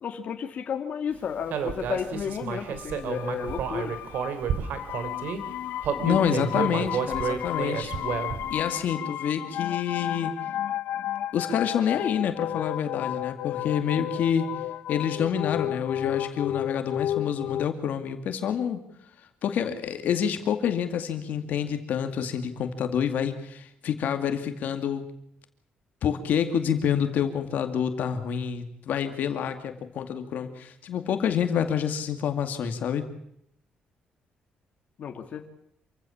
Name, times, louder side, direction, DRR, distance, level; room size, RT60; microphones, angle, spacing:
voice 1, 0.0-4.0 35.0-35.5, left 7 dB, 50° left, 4 dB, 2.2 m, -32 dB
Human voice, 1.5-5.4 5.8-8.5, right 7 dB, 75° right, 3.0 m, -30 dB
sound 1, 2.5-17.7, left 12 dB, 90° left, 0.9 m, -33 dB
voice 2, 6.0-7.9 8.5-10.3 11.3-14.5 14.9-18.8 19.4-25.0 26.0-33.1, left 8 dB, 65° left, 7 dB, 2.3 m, -27 dB
27.0 x 16.0 x 7.2 m, 0.76 s
cardioid pair, 145°, 3 cm